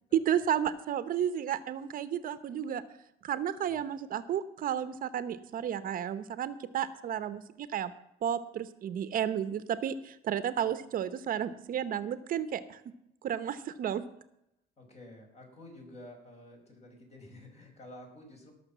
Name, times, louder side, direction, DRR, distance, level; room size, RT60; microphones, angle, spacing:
voice 1, 0.1-2.8 3.2-7.9 8.2-12.8 13.2-14.0, right 9 dB, 55° right, 13 dB, 0.9 m, -32 dB
voice 2, 14.8-18.5, left 1 dB, 40° left, 1 dB, 5.6 m, -51 dB
17.5 x 6.6 x 7.3 m, 0.80 s
cardioid pair, 110°, 17 cm